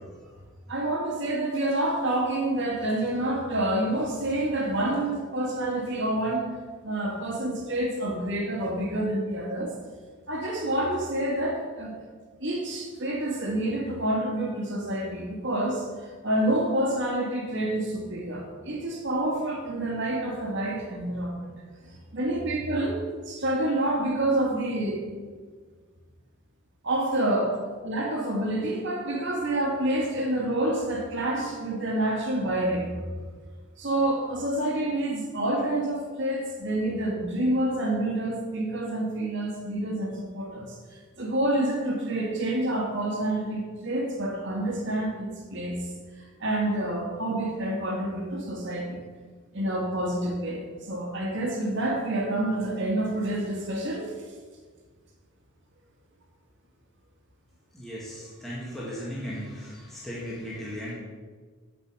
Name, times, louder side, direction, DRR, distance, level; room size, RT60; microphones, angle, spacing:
voice 1, 0.7-6.5 6.8-9.7 10.3-11.9 12.4-21.5 21.8-25.0 26.8-32.9 33.8-45.9 46.4-49.0 49.5-54.1, right 1 dB, 55° right, 0 dB, 1.9 m, -28 dB
voice 2, 57.7-60.9, equal, ahead, -7 dB, 1.8 m, -36 dB
9.6 x 5.3 x 6.1 m, 1.5 s
head